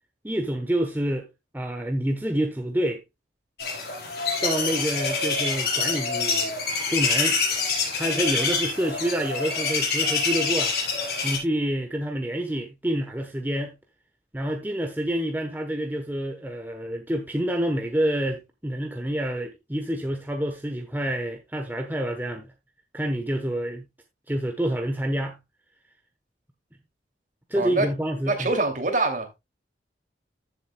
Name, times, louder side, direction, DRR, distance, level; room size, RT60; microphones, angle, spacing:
voice 1, 0.2-1.3 1.5-3.0 4.4-6.5 6.9-7.4 8.0-13.7 14.3-22.5 22.9-23.9 24.3-25.4 27.5-28.6, right 1 dB, 10° right, 1.0 m, -28 dB
sound 1, 3.6-11.4, left 4 dB, 55° left, 4.9 m, -26 dB
voice 2, 27.6-27.9 28.3-29.4, right 2 dB, 45° right, 2.6 m, -25 dB
14.5 x 7.8 x 2.2 m
head